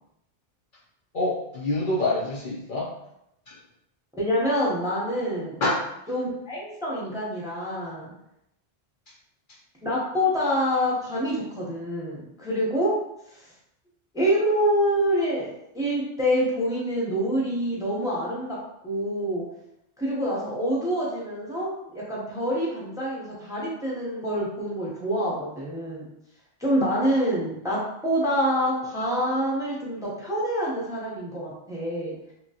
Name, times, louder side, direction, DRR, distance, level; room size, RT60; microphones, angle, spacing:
voice 1, 1.1-2.9 3.5-3.6 5.6-5.9, left 2 dB, 60° left, -4 dB, 0.7 m, -26 dB
voice 2, 4.1-5.6 6.1-8.1 9.8-13.0 13.3-13.5 14.1-18.6 18.8-19.5 20.0-26.0 26.6-32.2, equal, 5° right, -5 dB, 0.7 m, -26 dB
2.9 x 2.8 x 2.8 m, 0.82 s
omnidirectional pair, 1.0 m